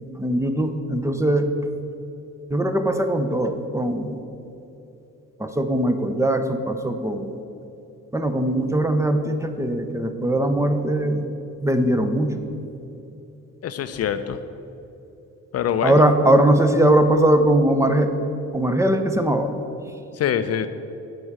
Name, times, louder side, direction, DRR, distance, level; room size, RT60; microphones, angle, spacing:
voice 1, 0.2-1.5 2.5-4.2 5.4-7.4 8.1-11.3 11.6-12.3 15.8-18.1 18.5-19.5, right 1 dB, 10° right, 7 dB, 0.7 m, -20 dB
voice 2, 13.6-14.4 15.5-16.0 20.1-20.7, left 9 dB, 55° left, 10 dB, 0.5 m, -24 dB
7.9 x 5.4 x 7.3 m, 2.9 s
cardioid pair, 90°, 30 cm